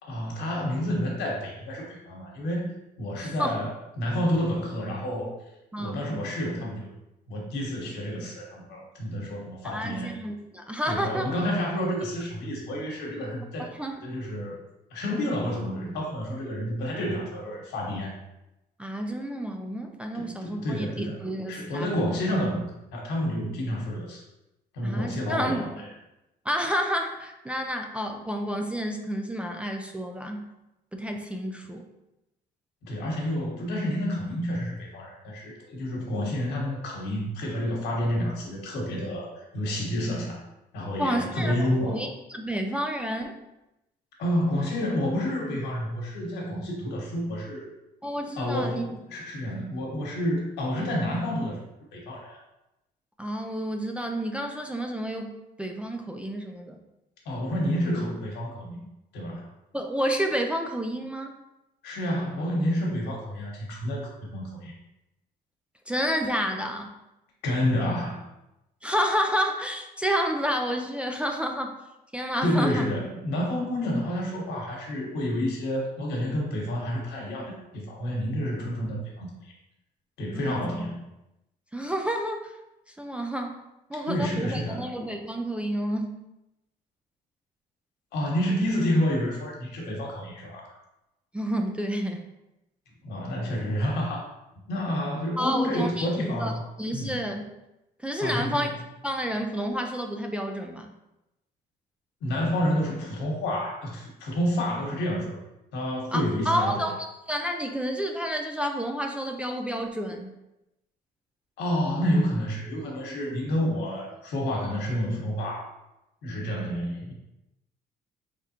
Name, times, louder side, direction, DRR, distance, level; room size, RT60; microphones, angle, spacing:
voice 1, 0.0-2.7 3.0-5.3 5.8-6.9 7.3-10.1 10.8-13.7 14.0-14.6 14.9-18.1 20.1-21.2 21.5-22.7 22.9-24.2 24.7-25.9 32.8-40.4 40.7-42.0 44.2-47.7 48.4-51.6 51.9-52.4 57.2-58.8 59.1-59.5 61.8-64.7 67.4-68.3 72.4-79.5 80.2-81.0 84.0-84.9 88.1-90.8 93.0-94.2 94.7-96.6 96.9-97.2 98.2-98.7 102.2-105.4 105.7-106.9 111.6-115.7 116.2-117.1, equal, 80° left, -2 dB, 1.2 m, -29 dB
voice 2, 3.2-3.5 5.7-6.2 9.6-11.3 13.8-14.0 18.8-21.9 24.8-25.6 26.5-30.4 30.9-31.8 41.0-41.5 41.9-43.4 48.0-49.0 53.2-55.3 55.6-56.8 59.7-61.3 65.9-66.9 68.8-71.7 72.1-72.9 80.3-80.9 81.7-82.5 83.0-83.6 83.9-86.2 91.3-92.2 95.4-96.1 96.4-96.5 96.8-97.5 98.0-98.7 99.0-100.9 106.1-110.3, equal, 5° right, 2 dB, 0.3 m, -30 dB
3.7 x 3.4 x 2.8 m, 0.92 s
cardioid pair, 110°, 17 cm